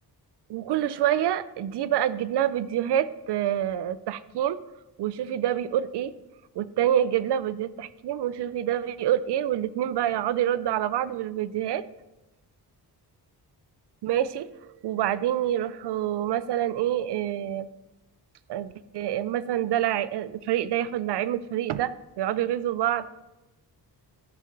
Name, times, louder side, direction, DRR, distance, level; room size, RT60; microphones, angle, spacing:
voice 1, 0.5-4.6 5.0-6.1 6.6-11.8 14.0-17.7 18.5-23.1, right 11 dB, 85° right, 16 dB, 0.5 m, -27 dB
13.0 x 6.7 x 3.9 m, 1.0 s
wide cardioid pair, 175°, 39 cm